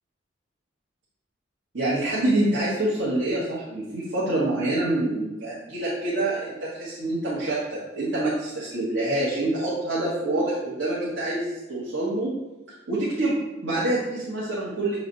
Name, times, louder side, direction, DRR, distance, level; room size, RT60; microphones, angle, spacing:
voice 1, 1.7-12.3 12.9-15.0, right 1 dB, 80° right, -10 dB, 1.6 m, -26 dB
6.9 x 3.4 x 4.0 m, 1.1 s
head